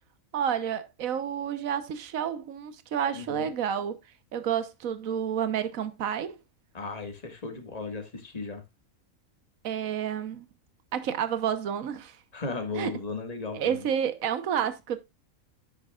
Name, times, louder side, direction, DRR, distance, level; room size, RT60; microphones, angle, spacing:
voice 1, 0.3-4.0 4.3-6.4 9.6-10.5 10.9-12.2 12.7-12.9 13.5-15.0, right 8 dB, 75° right, 1.4 m, -30 dB
voice 2, 3.1-3.5 6.7-8.6 12.3-13.9, left 3 dB, 30° left, 1.8 m, -36 dB
9.6 x 9.3 x 2.4 m
omnidirectional pair, 1.4 m